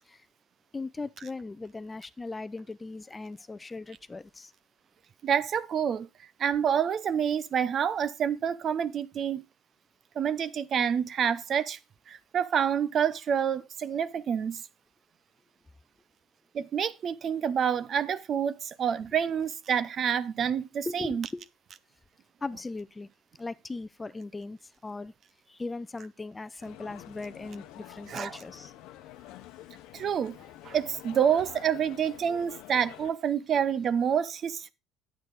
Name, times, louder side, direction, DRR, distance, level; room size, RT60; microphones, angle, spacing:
voice 1, 0.7-4.5 20.9-21.5 22.4-23.1 23.4-25.1 25.5-28.7, left 3 dB, 20° left, 0.6 m, -38 dB
voice 2, 5.2-6.1 6.4-9.4 10.2-11.8 12.1-14.6 16.5-21.3 28.1-28.4 29.9-30.4 30.6-34.7, right 8 dB, 50° right, 0.7 m, -28 dB
sound 1, 26.6-33.1, left 14 dB, 75° left, 0.8 m, -48 dB
9.2 x 8.2 x 3.9 m
supercardioid pair, 90°, 0 cm